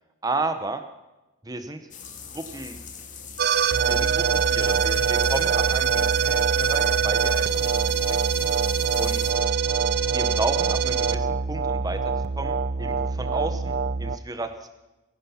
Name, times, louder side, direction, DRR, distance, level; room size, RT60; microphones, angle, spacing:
voice 1, 0.2-0.8 1.4-1.8 2.3-2.8 3.9-8.5 9.0-9.3 10.1-12.0 12.4-13.7 14.0-14.7, right 2 dB, 15° right, 8 dB, 0.9 m, -32 dB
sound 1, 1.9-9.3, left 6 dB, 35° left, 2.1 m, -41 dB
sound 2, 3.4-14.2, right 6 dB, 45° right, 0.5 m, -23 dB
21.0 x 11.0 x 5.8 m, 1.1 s
head